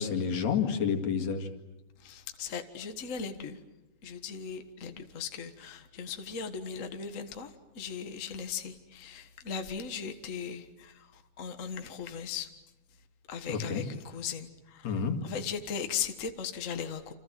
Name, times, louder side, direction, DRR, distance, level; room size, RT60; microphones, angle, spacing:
voice 1, 0.0-1.5 13.5-13.9 14.8-15.2, left 6 dB, 60° left, 5 dB, 3.2 m, -29 dB
voice 2, 2.0-3.6 4.0-7.5 7.7-11.1 11.4-12.5 13.3-17.1, left 6 dB, 35° left, 6 dB, 1.3 m, -38 dB
28.5 x 27.0 x 7.6 m, 0.98 s
omnidirectional pair, 3.6 m